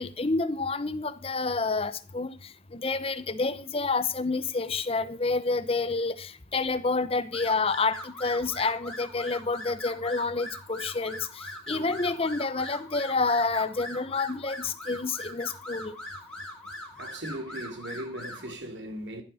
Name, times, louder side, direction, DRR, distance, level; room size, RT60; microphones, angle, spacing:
voice 1, 0.0-16.0, left 3 dB, 35° left, 0.9 m, -29 dB
sound 1, 7.3-18.5, left 1 dB, 5° left, 4.3 m, -41 dB
voice 2, 11.7-12.0 17.0-19.2, right 1 dB, 90° right, 3.0 m, -38 dB
15.5 x 12.5 x 4.3 m
head